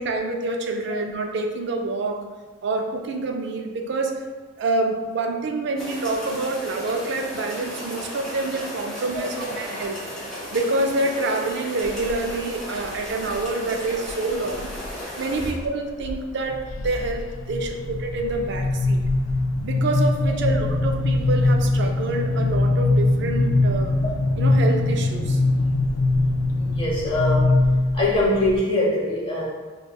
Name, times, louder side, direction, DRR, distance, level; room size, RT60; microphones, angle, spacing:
voice 1, 0.0-2.3 2.6-4.3 4.6-10.0 10.5-14.7 15.2-19.0 19.6-24.0 24.4-25.4, right 2 dB, 55° right, 3 dB, 0.4 m, -27 dB
sound 1, 5.8-15.5, equal, 5° left, 1.0 m, -35 dB
sound 2, 11.8-12.4 12.9-13.4 14.1-14.9 15.3-15.7 16.0-28.6, left 2 dB, 75° left, 0.3 m, -22 dB
voice 2, 26.6-27.5 27.9-29.5, left 1 dB, 25° left, -7 dB, 1.0 m, -23 dB
5.0 x 2.2 x 2.2 m, 1.3 s
head